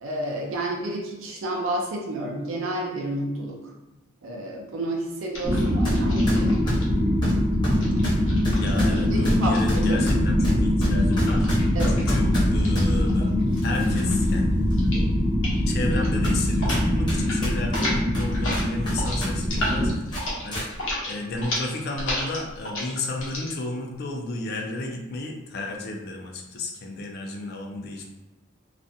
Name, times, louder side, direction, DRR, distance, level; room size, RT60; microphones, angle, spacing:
voice 1, 0.0-3.6 4.2-6.6 8.7-10.1 11.7-12.0, right 1 dB, 80° right, -1 dB, 0.5 m, -30 dB
sound 1, 5.3-6.8 7.7-10.2 11.1-13.7 13.9-14.3 14.7-15.1 15.3-15.6 15.9-16.8 17.1-17.4 17.6-23.5, left 1 dB, 70° left, 0.8 m, -33 dB
sound 2, 5.4-19.9, left 1 dB, 20° right, 0.5 m, -23 dB
voice 2, 5.5-5.8 8.5-11.5 11.9-13.3 13.6-14.5 15.7-20.7 21.1-28.1, left 2 dB, 50° left, 1 dB, 0.4 m, -33 dB
sound 3, 5.8-6.0 6.3-12.9 13.5-14.3 14.7-14.8 15.5-15.6 16.2-16.4 16.7-19.3 19.6-19.7 20.1-20.7, equal, 20° left, 0.7 m, -29 dB
2.4 x 2.1 x 2.6 m, 1.0 s
head